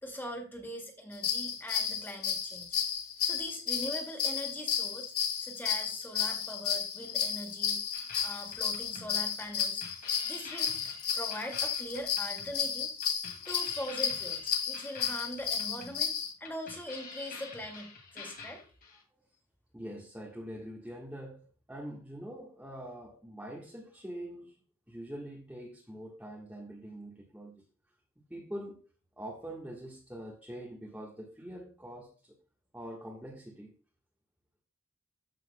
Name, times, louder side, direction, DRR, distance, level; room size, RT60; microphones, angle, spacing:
voice 1, 0.0-2.8 3.2-5.1 5.4-7.8 8.2-9.8 10.2-12.9 13.5-16.1 16.4-18.6, equal, 10° left, 2.3 m, -42 dB
sound 1, 1.1-16.3, left 7 dB, 75° left, 2.6 m, -33 dB
sound 2, 7.9-19.0, left 4 dB, 40° left, 2.3 m, -48 dB
voice 2, 19.7-24.6 24.9-27.6 28.2-28.8 29.2-32.4 32.7-33.7, right 1 dB, 5° right, 1.3 m, -44 dB
14.5 x 6.1 x 2.2 m
head